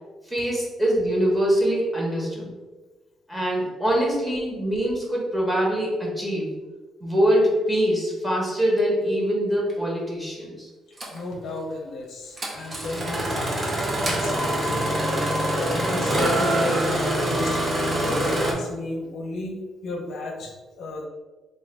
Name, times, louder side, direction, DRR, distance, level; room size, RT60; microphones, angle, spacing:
voice 1, 0.3-2.5 3.3-6.5 7.0-10.7, equal, 5° right, -3 dB, 1.2 m, -23 dB
Engine starting, 9.7-9.8 11.0-11.2 12.4-18.5, right 1 dB, 35° right, 1.0 m, -24 dB
voice 2, 11.1-13.6 14.1-16.9 17.2-17.7 18.0-19.5 19.8-21.1, left 2 dB, 70° left, 0 dB, 0.7 m, -33 dB
3.3 x 2.7 x 3.3 m, 1.3 s
cardioid pair, 90°, 0 cm